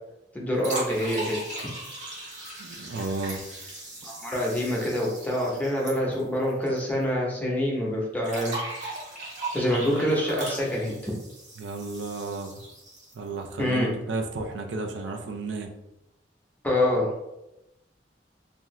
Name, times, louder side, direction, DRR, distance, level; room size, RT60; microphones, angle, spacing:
voice 1, 0.3-1.4 4.0-8.7 9.5-11.1 13.6-13.9 16.6-17.2, left 1 dB, 10° left, -3 dB, 0.7 m, -26 dB
sound 1, 0.6-6.8 7.0-7.1 8.2-13.3, right 2 dB, 45° right, 1.1 m, -38 dB
voice 2, 2.6-3.4 11.6-12.6 13.1-15.7, right 3 dB, 80° right, 3 dB, 0.4 m, -33 dB
2.6 x 2.3 x 3.0 m, 0.90 s
head